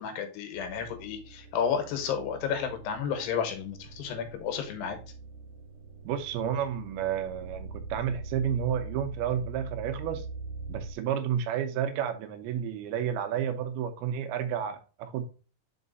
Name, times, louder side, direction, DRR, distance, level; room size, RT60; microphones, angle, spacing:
voice 1, 0.0-5.0, left 7 dB, 90° left, 6 dB, 3.2 m, -32 dB
sound 1, 0.5-10.9, right 3 dB, 60° right, 1.9 m, -43 dB
voice 2, 6.0-10.3 10.7-15.2, right 9 dB, 80° right, 8 dB, 2.4 m, -31 dB
5.4 x 4.8 x 3.9 m, 0.35 s
omnidirectional pair, 4.6 m